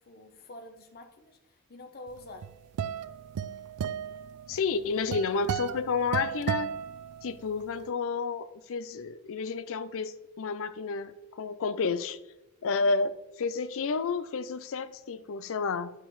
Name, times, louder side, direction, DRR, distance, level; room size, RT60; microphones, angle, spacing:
voice 1, 0.0-2.5 12.7-12.9, left 2 dB, 45° left, 5 dB, 0.9 m, -48 dB
sound 1, 2.2-7.6, right 8 dB, 90° right, 0.3 m, -35 dB
voice 2, 4.5-6.7 7.2-12.2 12.6-15.9, left 4 dB, 65° left, 12 dB, 0.5 m, -31 dB
9.0 x 5.8 x 3.1 m, 0.97 s
head